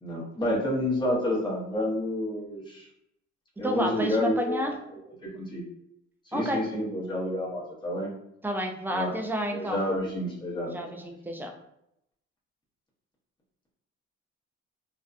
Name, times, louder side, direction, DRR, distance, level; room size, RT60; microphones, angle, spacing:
voice 1, 0.0-2.9 3.6-5.6 6.3-8.1 8.9-9.1 9.5-11.1, left 1 dB, 15° left, -5 dB, 0.8 m, -30 dB
voice 2, 3.6-4.7 6.3-6.6 8.4-9.8 10.7-11.5, equal, 5° right, 3 dB, 0.4 m, -30 dB
2.7 x 2.1 x 2.4 m, 0.79 s
cardioid pair, 90°, 30 cm